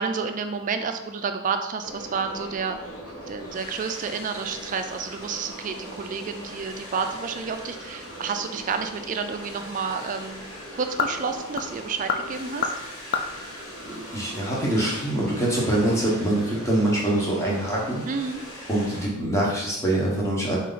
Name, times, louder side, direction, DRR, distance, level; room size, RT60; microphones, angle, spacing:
voice 1, 0.0-2.8 3.3-10.5 10.7-12.7 18.1-18.4, right 5 dB, 35° right, 7 dB, 0.3 m, -30 dB
sound 1, 1.8-19.0, equal, 85° left, 1.2 m, -40 dB
sound 2, 9.3-14.7, left 5 dB, 40° left, 0.4 m, -33 dB
voice 2, 13.8-18.0 18.7-20.6, right 1 dB, 15° left, -4 dB, 1.1 m, -24 dB
4.4 x 2.8 x 3.9 m, 0.91 s
head